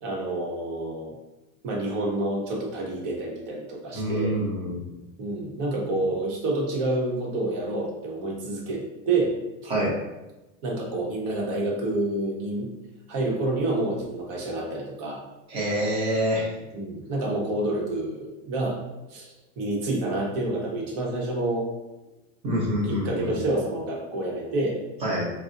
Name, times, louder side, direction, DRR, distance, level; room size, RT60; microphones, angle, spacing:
voice 1, 0.0-1.1 1.6-4.4 5.2-9.4 10.6-12.7 13.1-15.2 16.7-18.8 19.1-21.7 22.9-24.8, right 2 dB, 40° right, -2 dB, 0.9 m, -28 dB
voice 2, 3.9-4.8 9.7-10.0 15.5-16.5 22.4-23.4 25.0-25.3, equal, 15° right, -5 dB, 0.5 m, -26 dB
3.9 x 2.0 x 2.5 m, 1.0 s
supercardioid pair, 160°, 43 cm